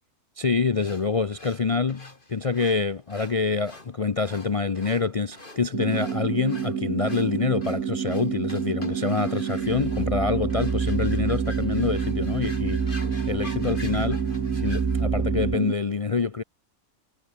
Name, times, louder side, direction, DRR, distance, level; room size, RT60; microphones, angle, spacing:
voice 1, 0.4-12.9 13.3-14.3 14.5-16.4, left 4 dB, 60° left, 0.3 m, -26 dB
sound 1, 0.8-15.0, left 2 dB, 35° left, 4.6 m, -47 dB
sound 2, 5.7-15.7, right 8 dB, 60° right, 1.5 m, -29 dB
sound 3, 9.6-15.5, right 4 dB, 35° right, 0.4 m, -29 dB
omnidirectional pair, 1.6 m